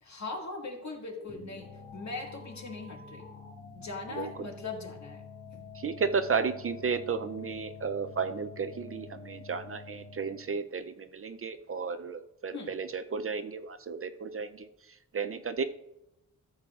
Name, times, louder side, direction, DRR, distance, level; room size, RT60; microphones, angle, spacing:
voice 1, 0.0-3.3 3.7-5.2 5.5-5.7 12.5-12.7, left 3 dB, 55° left, 1 dB, 1.9 m, -40 dB
sound 1, 1.3-10.5, left 5 dB, 25° left, 1.4 m, -47 dB
voice 2, 4.1-4.5 5.7-15.6, right 5 dB, 40° right, 9 dB, 0.5 m, -33 dB
13.5 x 7.4 x 2.4 m, 0.89 s
wide cardioid pair, 115°, 33 cm